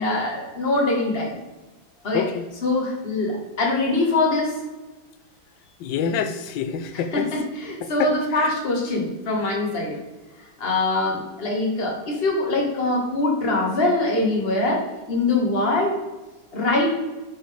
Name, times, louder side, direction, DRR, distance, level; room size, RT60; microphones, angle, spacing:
voice 1, 0.0-1.4 2.0-2.2 2.6-4.5 7.1-9.9 10.6-14.8 15.1-16.0 16.5-16.9, left 2 dB, 30° left, -2 dB, 1.8 m, -23 dB
voice 2, 2.1-2.5 5.8-7.3 7.8-8.5 9.4-9.5, left 7 dB, 75° left, 10 dB, 1.3 m, -27 dB
10.0 x 5.1 x 3.6 m, 1.1 s
omnidirectional pair, 2.1 m